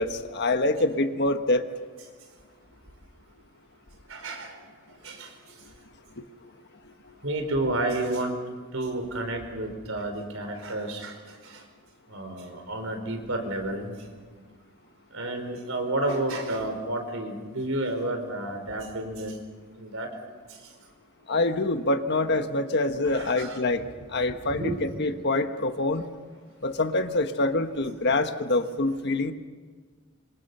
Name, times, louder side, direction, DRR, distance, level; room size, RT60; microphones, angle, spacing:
voice 1, 0.0-1.7 6.8-7.1 21.3-26.0 26.6-29.3, left 2 dB, 55° left, 8 dB, 1.4 m, -26 dB
voice 2, 4.1-4.6 5.0-5.3 7.2-8.3 8.7-11.2 11.4-11.6 12.1-13.9 15.1-19.3 19.8-20.1 23.0-23.6 24.3-24.8, right 1 dB, 70° right, 5 dB, 4.8 m, -31 dB
26.5 x 26.5 x 5.6 m, 1.5 s
head